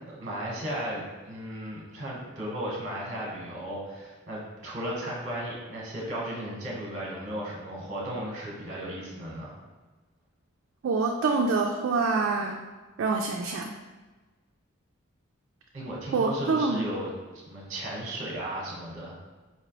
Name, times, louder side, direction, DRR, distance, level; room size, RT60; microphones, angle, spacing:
voice 1, 0.1-9.6 15.7-19.2, right 1 dB, 35° right, -4 dB, 1.0 m, -35 dB
voice 2, 10.8-12.6 13.0-13.7 16.1-16.8, right 4 dB, 60° right, 1 dB, 0.3 m, -26 dB
4.4 x 2.9 x 2.9 m, 1.3 s
head